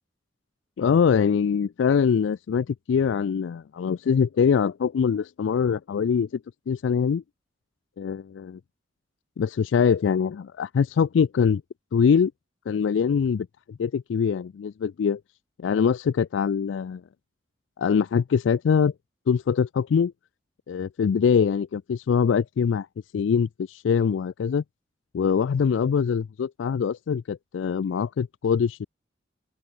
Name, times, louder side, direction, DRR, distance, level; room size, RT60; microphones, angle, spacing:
voice 1, 0.8-6.4 6.7-7.2 8.0-8.6 9.4-11.6 11.9-12.3 12.7-15.2 15.6-17.0 17.8-18.9 19.3-20.1 20.7-22.9 23.1-24.6 25.1-28.9, left 6 dB, 80° left, 0.3 m, -23 dB
head